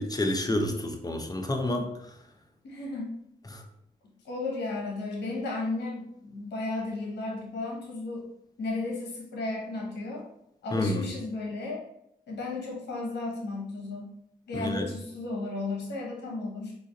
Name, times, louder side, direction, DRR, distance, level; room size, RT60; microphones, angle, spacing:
voice 1, 0.0-1.9 3.5-3.6 10.7-11.0 14.5-14.9, left 1 dB, 20° left, 5 dB, 0.6 m, -29 dB
voice 2, 2.6-3.1 4.2-8.3 8.6-10.2 10.6-11.8 12.3-14.1 14.5-16.7, left 3 dB, 85° left, -2 dB, 0.8 m, -34 dB
3.9 x 2.4 x 2.9 m, 0.77 s
cardioid pair, 50°, 17 cm